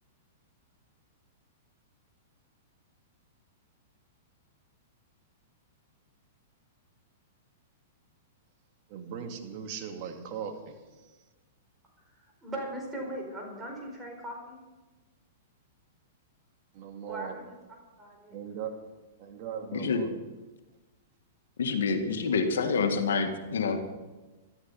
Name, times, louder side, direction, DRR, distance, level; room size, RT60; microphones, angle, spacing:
voice 1, 8.9-11.2 16.7-17.4 18.3-18.7 19.2-20.1, right 7 dB, 50° right, 4 dB, 2.4 m, -39 dB
voice 2, 12.2-14.6 17.1-17.5 18.0-18.4, right 1 dB, 15° right, 0 dB, 4.6 m, -39 dB
voice 3, 19.7-20.0 21.6-23.9, left 5 dB, 80° left, 6 dB, 1.8 m, -27 dB
14.0 x 12.5 x 5.7 m, 1.2 s
hypercardioid pair, 130°, 0 cm